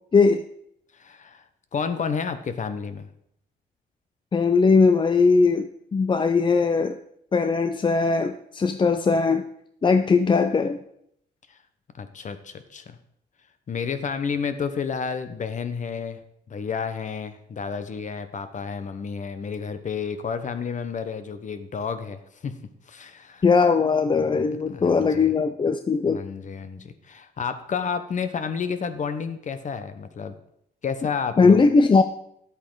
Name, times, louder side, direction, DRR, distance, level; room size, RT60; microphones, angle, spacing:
voice 1, 0.1-0.4 4.3-7.0 7.3-9.4 9.8-10.8 23.4-26.2 31.4-32.0, left 4 dB, 25° left, 8 dB, 0.5 m, -19 dB
voice 2, 0.9-1.5 1.7-3.1 12.0-13.0 13.7-16.2 16.5-22.6 22.9-23.4 24.7-25.3 26.1-30.4 30.8-31.6, left 6 dB, 40° left, 10 dB, 1.0 m, -31 dB
11.0 x 8.3 x 3.9 m, 0.73 s
cardioid pair, 95°, 19 cm